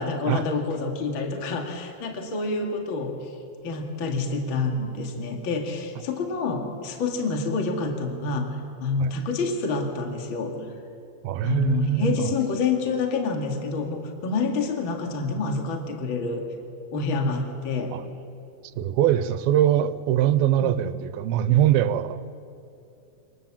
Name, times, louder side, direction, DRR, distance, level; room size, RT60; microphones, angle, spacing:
voice 1, 0.0-3.3 3.6-8.5 8.8-10.5 11.4-16.4 16.9-17.9 20.6-20.7, left 4 dB, 40° left, 3 dB, 2.4 m, -27 dB
voice 2, 11.2-12.3 17.9-18.0 18.8-22.3, right 11 dB, 90° right, 13 dB, 2.7 m, -22 dB
26.5 x 19.0 x 7.4 m, 2.8 s
omnidirectional pair, 4.2 m